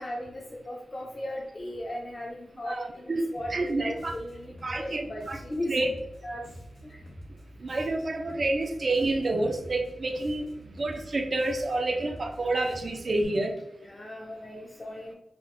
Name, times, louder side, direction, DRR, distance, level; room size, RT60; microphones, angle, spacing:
voice 1, 0.0-6.4 6.8-7.0 9.8-9.9 13.8-15.2, left 1 dB, 30° left, -3 dB, 0.5 m, -37 dB
voice 2, 2.6-4.1 4.6-5.9 7.6-10.4 10.8-13.5, right 2 dB, 40° right, 4 dB, 0.4 m, -29 dB
Bass guitar, 3.4-13.2, equal, 80° left, 1.1 m, -47 dB
3.5 x 2.4 x 3.7 m, 0.86 s
wide cardioid pair, 145°, 0 cm